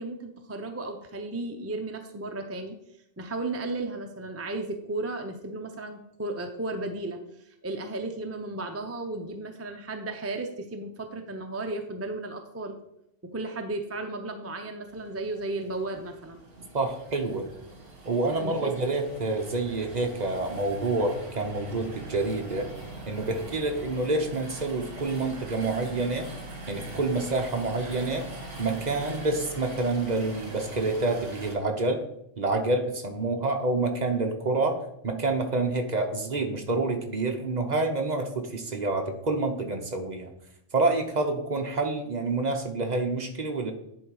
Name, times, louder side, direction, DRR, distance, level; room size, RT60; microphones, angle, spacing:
voice 1, 0.0-2.8 3.2-12.8 13.3-16.4 18.3-18.7, right 2 dB, 20° right, 4 dB, 0.4 m, -34 dB
sound 1, 14.9-31.6, right 2 dB, 65° right, 2.1 m, -43 dB
voice 2, 16.7-17.4 18.0-22.7 23.1-26.3 26.7-28.3 28.6-32.0 32.4-40.3 40.7-43.7, right 2 dB, 35° right, 4 dB, 1.0 m, -28 dB
10.5 x 3.9 x 4.8 m, 0.77 s
omnidirectional pair, 1.3 m